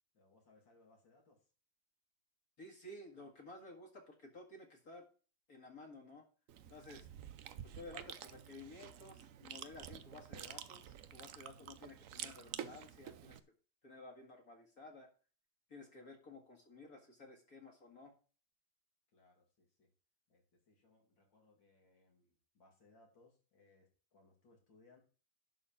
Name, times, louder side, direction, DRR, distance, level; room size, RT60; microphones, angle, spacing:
voice 1, 0.1-1.5 6.8-7.0 19.1-19.9 20.3-25.0, left 3 dB, 70° left, 1 dB, 3.3 m, -68 dB
voice 2, 2.6-5.0 5.5-6.2 6.7-7.1 7.7-13.4 13.8-15.1 15.7-18.1, left 2 dB, 50° left, 0 dB, 2.3 m, -54 dB
Chewing mastication, 6.5-13.4, right 10 dB, 70° right, 0.7 m, -50 dB
11.5 x 4.3 x 7.2 m, 0.38 s
omnidirectional pair, 2.1 m